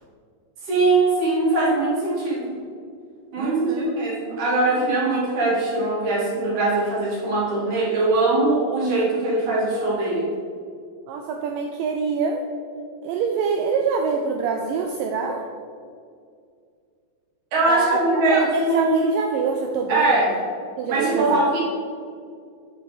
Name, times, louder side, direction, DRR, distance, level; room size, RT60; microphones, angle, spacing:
voice 1, 0.7-2.6 3.3-10.3 17.5-19.0 19.9-20.3 20.9-21.6, right 2 dB, 55° right, -7 dB, 3.3 m, -21 dB
voice 2, 3.4-3.9 11.1-12.5 13.0-15.4 17.7-20.3 20.8-21.4, right 5 dB, 85° right, 3 dB, 1.9 m, -25 dB
9.0 x 5.8 x 4.1 m, 2.3 s
omnidirectional pair, 4.4 m